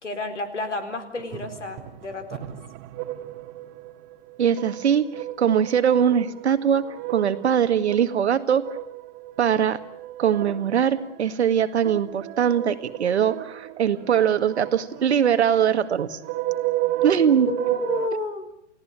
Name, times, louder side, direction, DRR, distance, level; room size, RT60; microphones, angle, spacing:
voice 1, 0.0-2.4 17.5-18.5, left 2 dB, 90° left, 8 dB, 4.2 m, -31 dB
sound 1, 1.2-18.1, right 15 dB, 30° right, 2.0 m, -33 dB
voice 2, 4.4-8.7 9.4-9.8 10.2-16.2 17.0-17.5, right 8 dB, 70° right, 10 dB, 1.9 m, -21 dB
29.5 x 17.5 x 8.9 m, 0.77 s
hypercardioid pair, 120°, 35 cm